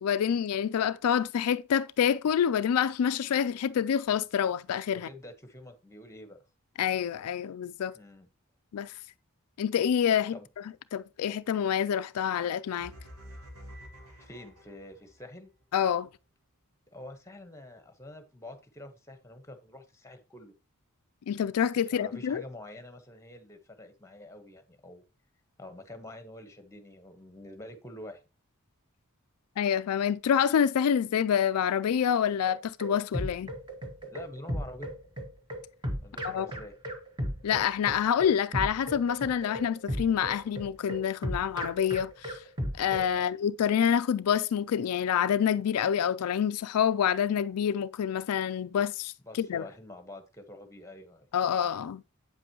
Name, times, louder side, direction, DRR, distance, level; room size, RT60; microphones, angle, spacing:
voice 1, 0.0-5.1 6.8-7.9 8.7-8.9 9.6-10.4 10.9-12.9 15.7-16.1 21.3-22.4 29.6-33.5 36.2-36.5 37.4-42.4 42.8-49.6 51.3-52.0, left 8 dB, 85° left, 0.4 m, -27 dB
voice 2, 4.9-6.4 7.9-8.3 10.3-10.5 14.2-15.5 16.9-20.5 21.8-25.0 25.6-28.2 34.0-34.9 36.0-36.7 43.1-43.3 49.2-51.3, left 1 dB, 15° left, 1.2 m, -47 dB
sound 1, 12.8-15.2, equal, 80° right, 1.8 m, -48 dB
sound 2, 32.5-43.1, equal, 20° right, 1.4 m, -35 dB
8.5 x 7.6 x 3.0 m
head